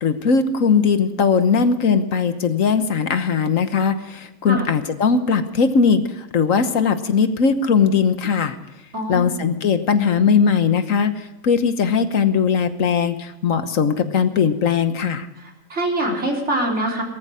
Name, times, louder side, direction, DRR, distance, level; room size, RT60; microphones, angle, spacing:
voice 1, 0.0-8.6 9.1-15.3, left 6 dB, 75° left, 10 dB, 1.5 m, -19 dB
voice 2, 8.9-9.3 15.4-17.0, right 1 dB, 55° right, -1 dB, 4.1 m, -24 dB
19.0 x 14.0 x 5.0 m, 0.99 s
omnidirectional pair, 1.4 m